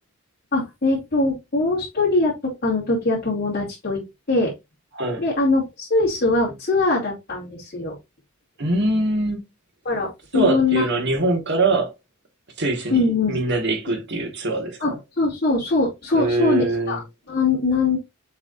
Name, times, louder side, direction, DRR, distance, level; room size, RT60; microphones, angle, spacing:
voice 1, 0.5-4.0 4.3-4.5 5.2-7.9 9.8-10.8 12.9-13.4 14.8-14.9 15.2-17.0 17.3-18.0, left 3 dB, 45° left, 3.0 m, -22 dB
voice 2, 4.9-5.3 8.6-9.4 10.3-11.9 12.6-15.0 16.1-17.0, right 2 dB, 55° right, 2.0 m, -23 dB
7.1 x 4.9 x 2.7 m
head